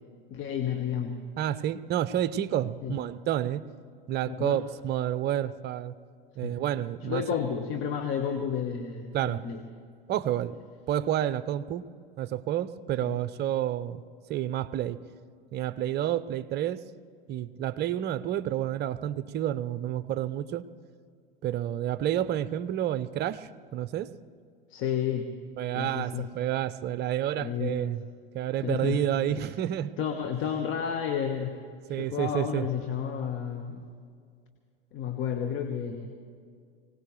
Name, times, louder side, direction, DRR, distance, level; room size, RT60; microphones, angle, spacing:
voice 1, 0.3-1.2 2.8-3.0 4.3-4.6 6.4-6.6 7.0-9.6 13.0-13.2 24.7-25.3 25.7-26.3 27.4-27.9 28.6-29.0 29.3-29.4 30.0-31.6 32.0-33.9 34.9-36.2, left 8 dB, 45° left, 5 dB, 1.3 m, -31 dB
voice 2, 1.4-3.6 4.1-5.9 6.4-7.2 9.1-9.4 10.1-10.6 10.9-11.8 12.2-14.0 14.3-15.0 15.5-16.8 17.3-20.6 21.4-24.1 25.6-28.0 28.3-29.9 31.9-32.7, right 11 dB, 35° right, 15 dB, 0.7 m, -29 dB
24.5 x 18.0 x 3.2 m, 2.1 s
hypercardioid pair, 85°, 29 cm